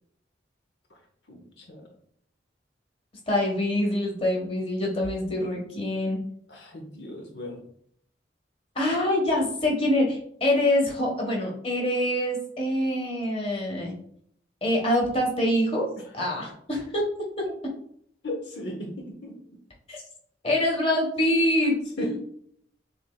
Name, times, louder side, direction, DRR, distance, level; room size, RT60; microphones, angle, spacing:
voice 1, 1.3-1.9 6.5-7.6 16.0-16.1 18.2-19.4 22.0-22.1, left 1 dB, 70° left, 2 dB, 0.8 m, -36 dB
voice 2, 3.3-6.2 8.7-13.9 14.6-15.8 16.1-17.0 17.4-17.5 19.9-20.0 20.4-22.2, left 1 dB, 30° left, -1 dB, 1.3 m, -25 dB
6.9 x 3.3 x 2.3 m, 0.66 s
head